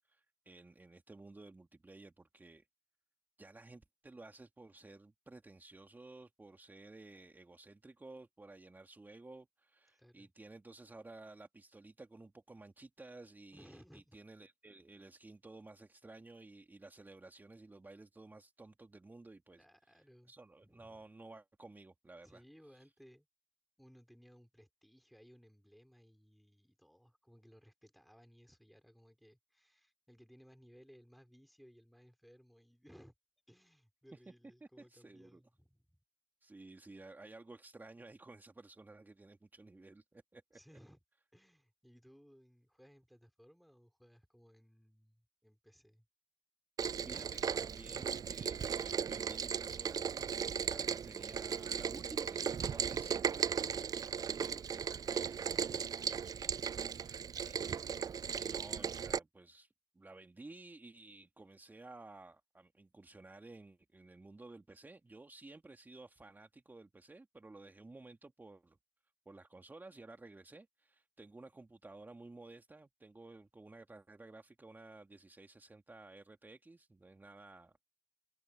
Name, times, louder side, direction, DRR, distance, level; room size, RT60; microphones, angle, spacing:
voice 1, 0.0-2.7 3.4-22.4 34.1-34.2 34.6-35.4 36.4-40.6 47.0-50.1 50.4-53.4 54.4-57.9 58.3-68.8 69.3-77.7, right 2 dB, 20° right, 2.4 m, -55 dB
voice 2, 9.9-10.3 13.5-14.2 19.6-20.3 20.6-21.0 22.2-23.3 23.8-33.1 33.5-36.0 40.5-41.0 41.3-46.1 56.6-57.5, equal, ahead, 5.4 m, -62 dB
Rain, 46.8-59.2, right 7 dB, 40° right, 0.5 m, -37 dB
hypercardioid pair, 50°, 10 cm